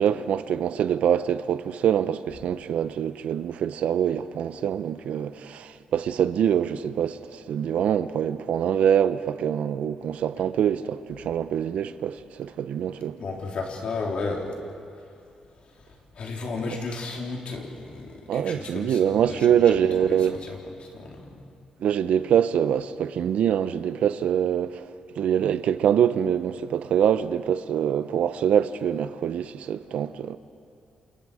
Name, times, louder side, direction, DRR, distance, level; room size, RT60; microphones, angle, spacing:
voice 1, 0.0-13.2 18.3-20.4 21.8-24.9 25.2-30.4, right 9 dB, 80° right, 0.8 m, -24 dB
voice 2, 13.2-15.2 15.5-19.7 20.0-21.5, left 3 dB, 60° left, 3.8 m, -34 dB
29.0 x 28.0 x 5.0 m
cardioid pair, 125°, 2 cm